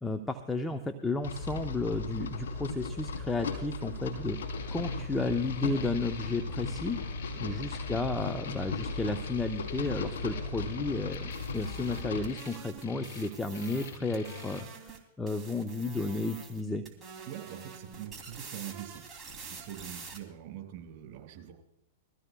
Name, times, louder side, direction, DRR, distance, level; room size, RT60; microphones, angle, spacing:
voice 1, 0.0-4.4 4.7-7.0 7.4-16.8, left 3 dB, 10° left, 6 dB, 0.7 m, -33 dB
sound 1, 1.2-12.3, left 3 dB, 80° left, 3.2 m, -37 dB
sound 2, 4.3-14.6, left 6 dB, 60° left, 3.4 m, -45 dB
sound 3, 11.1-15.0 15.3-16.6 16.9-20.2, right 4 dB, 15° right, 2.8 m, -47 dB
voice 2, 17.3-19.0 19.4-21.5, right 11 dB, 50° right, 3 dB, 5.1 m, -44 dB
23.0 x 15.0 x 2.3 m, 0.80 s
hypercardioid pair, 120°, 0 cm